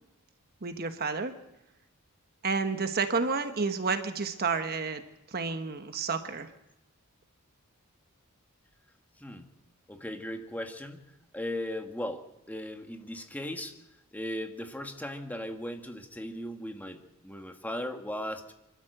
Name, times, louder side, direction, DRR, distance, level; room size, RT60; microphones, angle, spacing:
voice 1, 0.6-1.3 2.4-5.0 5.3-6.5, right 4 dB, 45° right, 8 dB, 1.1 m, -30 dB
voice 2, 9.9-11.1 11.3-13.7 14.1-18.4, left 1 dB, 10° left, 5 dB, 1.5 m, -37 dB
25.5 x 12.5 x 7.9 m, 0.91 s
head